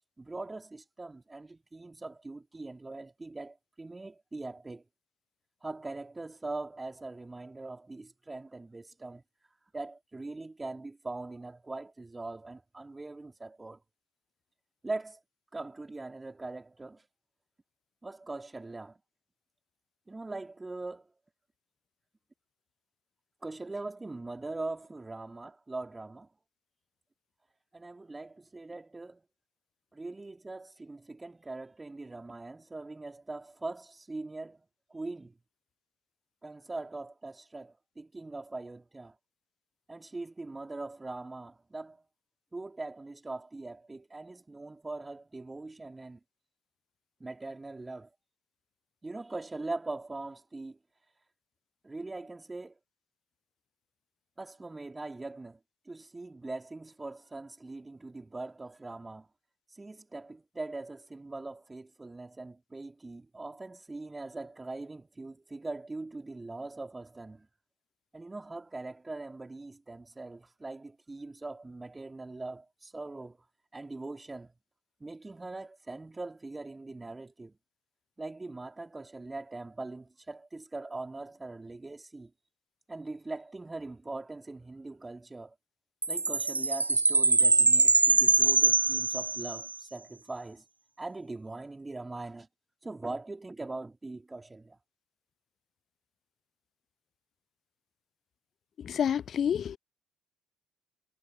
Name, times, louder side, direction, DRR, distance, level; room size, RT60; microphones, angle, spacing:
voice 1, 0.2-4.8 5.6-9.2 9.7-13.8 14.8-15.2 15.5-17.1 18.0-19.0 20.1-21.1 23.4-26.3 27.7-29.2 29.9-35.4 36.4-39.2 39.9-42.0 42.5-46.2 47.2-48.1 49.0-50.8 51.8-52.8 54.4-55.6 55.8-59.3 59.7-67.5 68.1-73.4 73.7-74.5 75.0-77.6 78.2-82.3 82.9-85.5 86.1-90.6 91.0-92.5 92.8-94.8, right 2 dB, 15° right, 3.2 m, -41 dB
Chime, 86.0-89.7, right 3 dB, 85° right, 0.5 m, -23 dB
voice 2, 98.8-99.8, left 8 dB, 45° left, 0.6 m, -29 dB
figure-of-eight pair, 50°, 0 cm